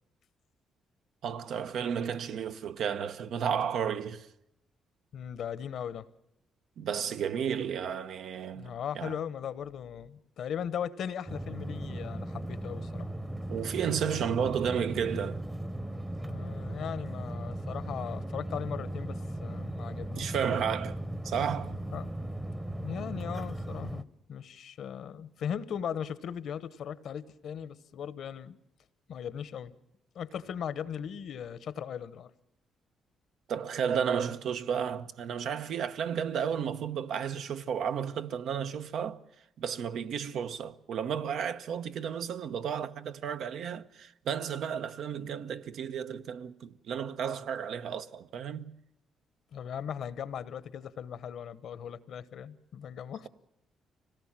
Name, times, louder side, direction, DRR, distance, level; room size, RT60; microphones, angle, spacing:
voice 1, 1.2-4.3 6.8-9.2 13.5-15.4 20.1-21.0 21.2-21.8 33.5-39.2 39.6-48.7, right 7 dB, 70° right, 0.8 m, -32 dB
voice 2, 5.1-6.1 8.6-13.1 16.2-20.8 21.9-22.1 22.8-28.6 29.1-29.7 30.1-32.3 49.5-53.3, left 8 dB, 70° left, 1.0 m, -38 dB
sound 1, 11.3-24.0, right 1 dB, 10° right, 0.9 m, -37 dB
25.0 x 18.0 x 7.4 m
cardioid pair, 90°, 0 cm